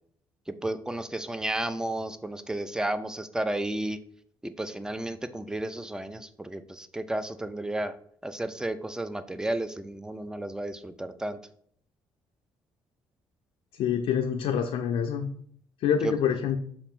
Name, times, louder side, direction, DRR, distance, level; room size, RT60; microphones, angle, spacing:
voice 1, 0.6-4.0 4.4-7.9 8.2-11.4 16.0-16.1, right 1 dB, 5° right, 12 dB, 0.3 m, -32 dB
voice 2, 13.8-15.3 15.8-16.6, left 8 dB, 80° left, 4 dB, 0.4 m, -26 dB
5.7 x 2.5 x 3.5 m, 0.62 s
cardioid pair, 100°, 9 cm